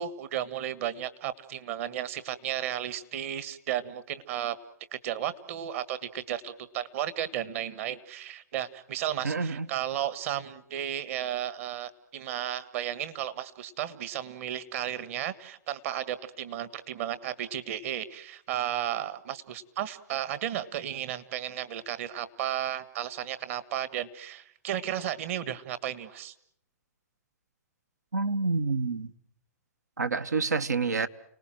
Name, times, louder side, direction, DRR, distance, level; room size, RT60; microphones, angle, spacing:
voice 1, 0.0-4.6 4.9-26.3, right 11 dB, 55° right, 1.6 m, -34 dB
voice 2, 9.2-9.7 28.1-29.1 30.0-31.1, right 4 dB, 90° right, 1.1 m, -28 dB
30.0 x 19.0 x 7.7 m
hypercardioid pair, 125°, 9 cm